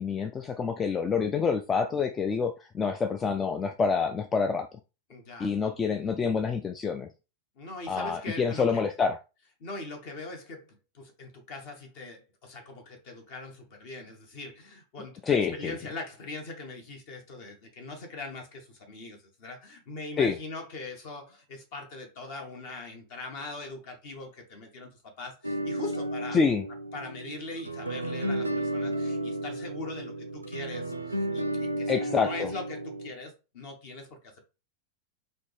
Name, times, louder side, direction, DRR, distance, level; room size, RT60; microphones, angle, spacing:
voice 1, 0.0-4.7 5.4-7.1 7.9-9.2 15.2-15.7 20.2-20.4 26.3-26.6 31.9-32.5, left 5 dB, 20° left, 0.3 m, -27 dB
voice 2, 5.1-5.5 7.6-8.8 9.6-26.4 26.9-34.2, left 2 dB, 50° left, 1.4 m, -41 dB
sound 1, 25.4-33.1, right 1 dB, 85° right, 0.4 m, -33 dB
4.1 x 2.8 x 3.3 m
figure-of-eight pair, 90°, 0 cm